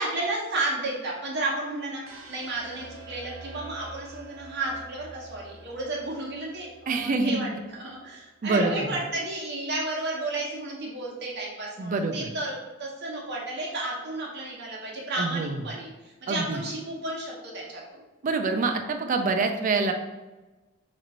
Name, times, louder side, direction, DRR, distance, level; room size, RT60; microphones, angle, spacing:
voice 1, 0.0-2.0 2.3-12.5 12.8-18.0, right 2 dB, 55° right, -3 dB, 1.0 m, -32 dB
sound 1, 2.0-8.1, right 2 dB, 90° right, 0.8 m, -47 dB
voice 2, 6.9-7.4 8.4-8.9 11.8-12.3 15.2-15.6 16.3-16.6 18.2-19.9, right 3 dB, 40° right, 5 dB, 0.4 m, -26 dB
3.0 x 2.5 x 4.1 m, 1.1 s
head